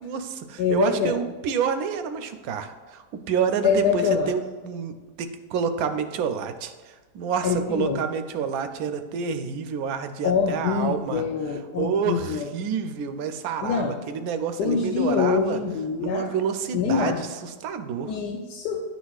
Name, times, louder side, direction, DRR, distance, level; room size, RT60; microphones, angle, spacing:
voice 1, 0.0-11.2 11.8-15.6 16.0-18.1, right 7 dB, 70° right, 8 dB, 1.0 m, -28 dB
voice 2, 0.6-1.2 3.6-4.3 7.4-8.0 10.2-12.5 13.6-13.9 14.6-16.3 16.7-17.2 18.1-18.8, left 6 dB, 90° left, 1 dB, 1.2 m, -24 dB
10.5 x 4.1 x 2.3 m, 1.3 s
omnidirectional pair, 1.7 m